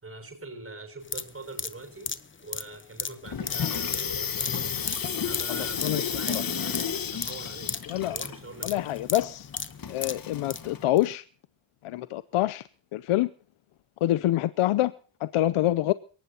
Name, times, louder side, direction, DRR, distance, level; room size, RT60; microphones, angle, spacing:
voice 1, 0.0-2.1 2.4-7.7 8.1-8.9, right 3 dB, 25° right, 6 dB, 6.8 m, -43 dB
sound 1, 1.0-10.7 11.0-11.1, left 5 dB, 25° left, 0.9 m, -36 dB
Water tap faucet / Sink (filling or washing), 3.2-10.8, left 7 dB, 45° left, 1.5 m, -32 dB
voice 2, 5.5-6.1 7.9-8.2 8.6-9.5 9.9-11.2 11.8-12.6 12.9-13.3 14.0-14.9 15.2-15.9, left 14 dB, 80° left, 15 dB, 0.7 m, -26 dB
22.0 x 18.5 x 2.9 m, 0.42 s
cardioid pair, 90°, 49 cm